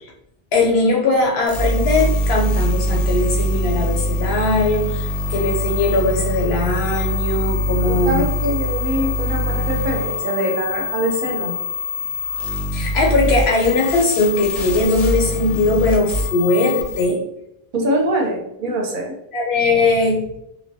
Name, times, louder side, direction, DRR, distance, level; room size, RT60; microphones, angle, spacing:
voice 1, 0.5-8.2 12.7-17.2 19.3-20.3, left 2 dB, 85° left, 0 dB, 0.9 m, -19 dB
sound 1, 1.5-17.0, left 1 dB, 50° left, 0.6 m, -23 dB
voice 2, 7.9-11.6 17.7-19.1, right 1 dB, 60° right, 1 dB, 0.7 m, -23 dB
2.2 x 2.1 x 2.6 m, 0.82 s
omnidirectional pair, 1.0 m